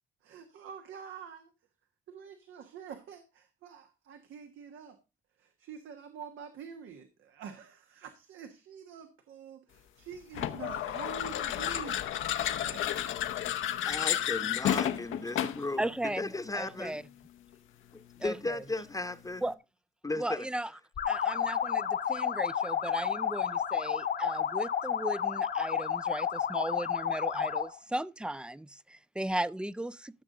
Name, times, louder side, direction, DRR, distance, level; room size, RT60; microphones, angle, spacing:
voice 1, 0.2-1.5 2.1-5.0 5.4-13.1, right 7 dB, 80° right, 1.3 m, -47 dB
sound 1, 10.3-15.7, left 11 dB, 80° left, 0.9 m, -31 dB
voice 2, 13.8-17.0 17.9-19.5 20.0-20.5, left 2 dB, 15° left, 0.9 m, -36 dB
voice 3, 15.8-17.0 18.2-18.6 19.4-19.6 20.2-20.7 21.1-30.2, right 1 dB, 5° right, 0.4 m, -36 dB
sound 2, 21.0-27.8, left 8 dB, 60° left, 1.2 m, -31 dB
13.5 x 6.7 x 3.7 m
cardioid pair, 90°, 20 cm